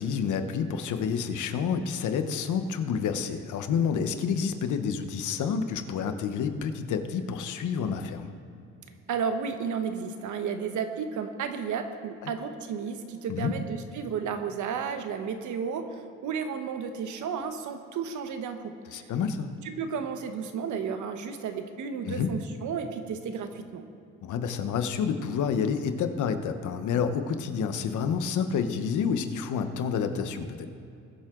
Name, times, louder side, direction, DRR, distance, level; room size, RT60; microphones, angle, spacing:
voice 1, 0.0-8.3 12.2-12.3 13.3-13.5 18.9-19.5 22.0-22.3 24.2-30.7, left 6 dB, 80° left, 8 dB, 1.0 m, -29 dB
voice 2, 9.1-18.6 18.9-19.0 19.6-23.8, right 6 dB, 75° right, 7 dB, 1.2 m, -33 dB
20.5 x 7.6 x 3.8 m, 2.7 s
cardioid pair, 90°, 30 cm